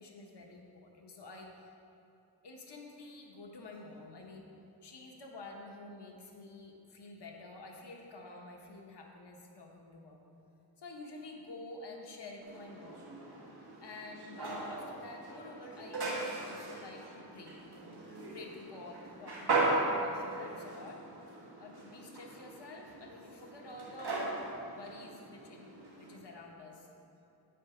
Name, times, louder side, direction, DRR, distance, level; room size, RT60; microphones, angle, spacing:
voice 1, 0.0-1.7 2.4-4.5 4.8-10.2 10.8-13.1 13.8-16.1 16.4-21.0 21.6-26.9, left 2 dB, 90° left, 0 dB, 1.1 m, -49 dB
sound 1, 12.4-26.2, right 2 dB, 70° right, 1.6 m, -38 dB
9.1 x 7.4 x 4.9 m, 2.9 s
wide cardioid pair, 55°, 40 cm